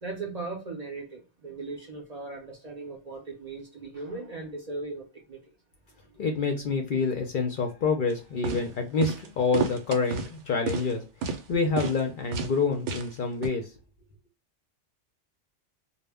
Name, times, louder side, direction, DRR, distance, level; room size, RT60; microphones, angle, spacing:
voice 1, 0.0-5.4 6.1-6.2, right 3 dB, 40° right, 0 dB, 0.6 m, -38 dB
voice 2, 6.2-11.0 11.5-13.7, left 4 dB, 55° left, 3 dB, 0.6 m, -27 dB
sound 1, 8.1-8.2 8.4-8.6 9.0-9.3 9.5-10.3 10.7-10.9 11.2-11.4 11.8-12.0 12.3-12.5 12.9-13.1 13.4-13.5, right 5 dB, 80° right, 0.9 m, -31 dB
2.1 x 2.0 x 3.4 m, 0.30 s
omnidirectional pair, 1.2 m